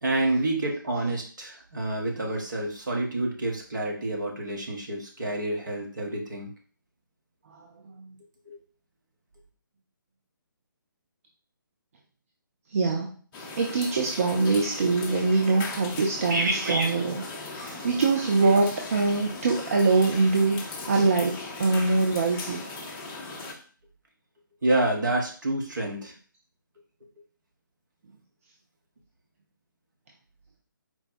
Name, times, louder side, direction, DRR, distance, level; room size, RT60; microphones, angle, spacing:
voice 1, 0.0-6.5 8.5-8.6 16.3-16.9 24.6-26.1, right 1 dB, 60° right, 0 dB, 1.2 m, -28 dB
voice 2, 12.7-13.1 13.6-17.2 17.5-22.6, right 3 dB, 40° right, 1 dB, 0.5 m, -24 dB
sound 1, 13.3-23.5, left 3 dB, 15° left, 0.5 m, -38 dB
4.5 x 2.2 x 4.1 m, 0.42 s
figure-of-eight pair, 140°, 11 cm